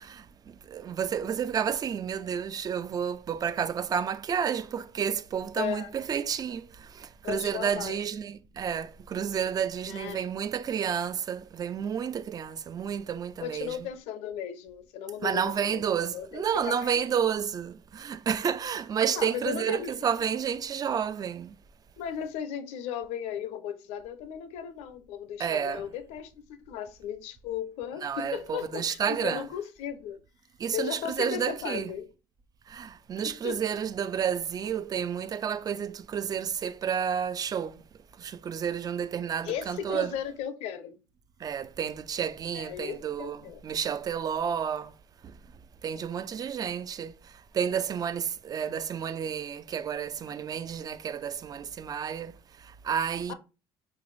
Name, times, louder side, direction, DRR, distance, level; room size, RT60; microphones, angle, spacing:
voice 1, 0.0-13.9 15.2-21.6 25.4-25.9 28.0-29.5 30.6-31.9 32.7-40.2 41.4-44.9 45.2-45.4 45.8-53.3, right 8 dB, 35° right, 0.4 m, -31 dB
voice 2, 5.6-5.9 7.2-8.0 9.9-10.2 13.4-15.8 16.1-17.1 19.2-19.9 20.2-20.3 22.0-30.2 30.7-32.0 33.2-33.6 39.4-40.9 42.5-43.6 53.3-53.4, left 9 dB, 75° left, 0.5 m, -36 dB
3.1 x 2.5 x 3.1 m
supercardioid pair, 80°, 11 cm